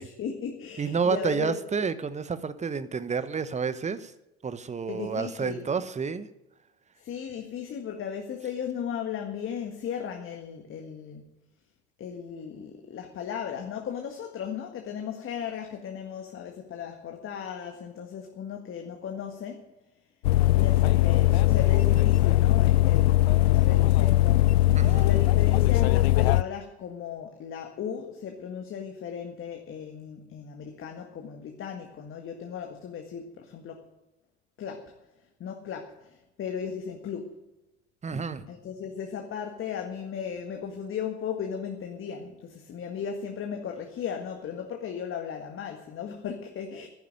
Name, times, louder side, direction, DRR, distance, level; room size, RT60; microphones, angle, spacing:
voice 1, 0.0-1.6 4.9-5.6 7.0-11.2 12.0-19.7 20.5-33.9 34.6-34.9 35.4-37.4 38.5-46.9, left 7 dB, 40° left, 4 dB, 1.8 m, -36 dB
voice 2, 0.8-4.1 4.4-6.3 24.8-25.1 38.0-38.5, right 5 dB, 20° right, 13 dB, 1.1 m, -30 dB
sound 1, 20.2-26.4, left 16 dB, 70° left, 0.5 m, -20 dB
11.0 x 10.5 x 9.2 m, 0.99 s
figure-of-eight pair, 65°, 32 cm